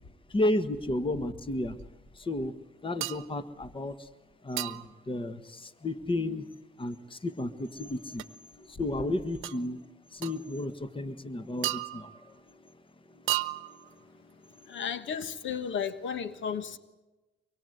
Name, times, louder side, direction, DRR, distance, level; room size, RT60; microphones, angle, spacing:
voice 1, 0.3-1.8 2.2-2.5 2.8-4.1 4.4-6.5 6.8-8.3 8.6-9.8 10.1-12.4 13.1-13.7, left 1 dB, 25° left, 13 dB, 1.5 m, -33 dB
sound 1, 3.0-3.3 4.6-5.0 8.2-8.3 9.4-9.6 10.2-10.4 11.6-12.3 13.3-13.9, right 16 dB, 90° right, 0.9 m, -33 dB
voice 2, 14.7-16.8, left 7 dB, 70° left, 13 dB, 1.4 m, -33 dB
24.5 x 23.5 x 8.0 m, 1.1 s
cardioid pair, 90°, 20 cm